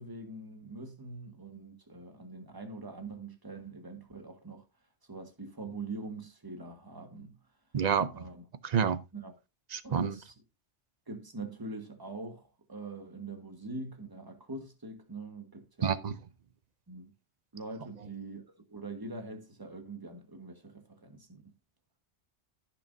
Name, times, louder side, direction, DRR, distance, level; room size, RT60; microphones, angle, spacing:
voice 1, 0.0-4.7 5.1-7.4 8.1-8.4 9.1-9.3 9.8-10.3 11.1-16.0 16.9-17.1 17.5-18.4 18.7-21.4, right 3 dB, 20° right, 1.5 m, -43 dB
voice 2, 7.7-8.3 8.6-9.0 9.7-10.2 15.8-16.1, right 7 dB, 45° right, 0.7 m, -28 dB
15.0 x 6.1 x 2.7 m
omnidirectional pair, 1.2 m